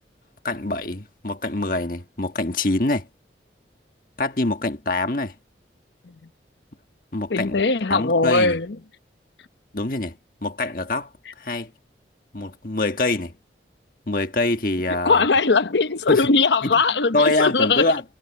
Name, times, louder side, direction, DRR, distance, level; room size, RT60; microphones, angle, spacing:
voice 1, 0.4-3.1 4.2-5.3 7.1-7.6 7.9-8.6 9.7-11.1 11.4-11.7 12.3-13.3 14.1-15.3 16.1-16.3 16.6-16.8 17.1-18.0, left 2 dB, 50° left, 1.5 m, -24 dB
voice 2, 7.3-8.8 15.0-17.8, left 4 dB, 75° left, 0.9 m, -19 dB
head